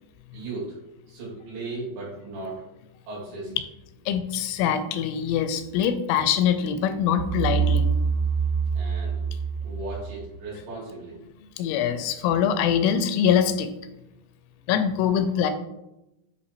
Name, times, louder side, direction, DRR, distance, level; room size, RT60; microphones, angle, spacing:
voice 1, 0.3-0.8 1.1-2.6 3.1-3.5 8.7-9.2 9.6-11.2 15.1-15.2, right 2 dB, 70° right, -5 dB, 4.2 m, -36 dB
voice 2, 4.1-7.9 11.6-13.7 14.7-15.5, left 8 dB, 85° left, 9 dB, 2.9 m, -23 dB
Spring Boing, 7.2-10.3, right 6 dB, 90° right, 3.0 m, -25 dB
8.2 x 2.8 x 4.2 m, 0.91 s
omnidirectional pair, 5.4 m